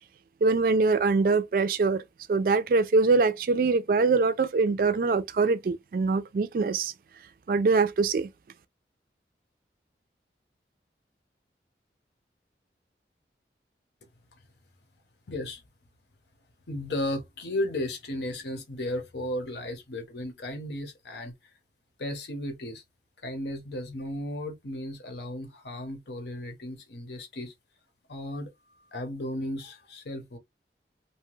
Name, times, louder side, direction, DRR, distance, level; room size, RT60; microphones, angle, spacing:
voice 1, 0.4-2.0 2.3-6.9 7.5-8.3, right 4 dB, 50° right, 0.3 m, -23 dB
voice 2, 15.3-15.6 16.7-21.3 22.0-22.8 23.2-27.5 28.1-28.5 28.9-30.4, left 1 dB, 75° left, 0.8 m, -34 dB
2.8 x 2.2 x 3.1 m
head